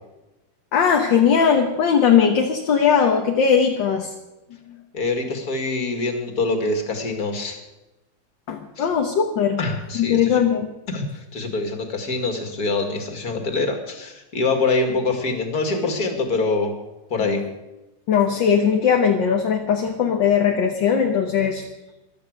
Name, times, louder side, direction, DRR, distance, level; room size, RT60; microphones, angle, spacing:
voice 1, 0.7-4.1 4.7-4.8 8.5-9.6 9.9-10.7 17.2-17.5 18.1-21.6, left 7 dB, 60° left, 3 dB, 1.8 m, -19 dB
voice 2, 4.9-7.6 8.8-8.9 9.6-10.3 10.9-16.7 17.1-17.4, left 3 dB, 45° left, 5 dB, 2.7 m, -24 dB
14.5 x 12.5 x 6.5 m, 1.0 s
omnidirectional pair, 2.3 m